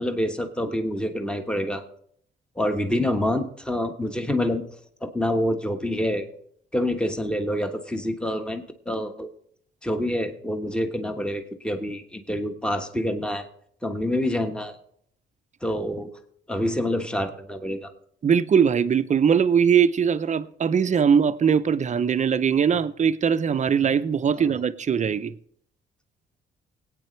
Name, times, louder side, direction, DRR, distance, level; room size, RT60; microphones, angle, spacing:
voice 1, 0.0-1.8 2.6-4.6 5.0-6.3 6.7-9.3 9.8-13.4 13.8-14.8 15.6-16.1 16.5-17.9 24.4-24.5, left 1 dB, 5° left, 1.3 m, -27 dB
voice 2, 18.2-25.3, right 7 dB, 40° right, 0.6 m, -21 dB
20.0 x 9.0 x 3.2 m
cardioid pair, 90°, 20 cm